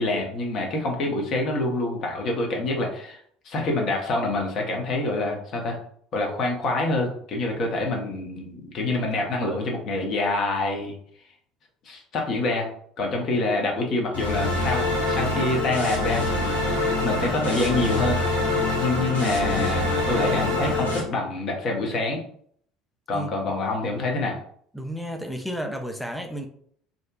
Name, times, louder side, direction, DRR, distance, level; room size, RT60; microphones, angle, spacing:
voice 1, 0.0-3.2 3.4-5.8 6.1-11.0 11.8-12.7 13.0-16.6 17.0-18.2 18.8-22.2 23.1-24.4, left 2 dB, 45° left, 1 dB, 0.7 m, -26 dB
sound 1, 14.1-21.0, left 2 dB, 90° left, 0.7 m, -25 dB
voice 2, 24.7-26.5, equal, ahead, 4 dB, 0.3 m, -32 dB
2.5 x 2.1 x 2.3 m, 0.62 s
figure-of-eight pair, 60°, 0 cm